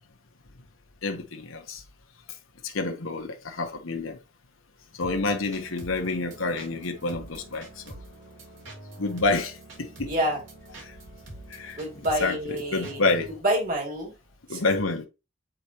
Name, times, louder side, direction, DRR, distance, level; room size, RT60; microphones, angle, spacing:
voice 1, 1.0-1.8 2.6-4.2 5.0-7.7 9.0-10.1 10.8-10.9 11.5-11.8 12.2-13.3 14.5-15.0, left 3 dB, 75° left, 1.0 m, -28 dB
sound 1, 5.0-13.4, right 1 dB, 65° right, 2.5 m, -45 dB
voice 2, 10.1-10.4 11.8-13.0 13.4-14.1 14.5-14.7, right 1 dB, 45° right, 2.5 m, -27 dB
8.0 x 4.7 x 2.9 m
head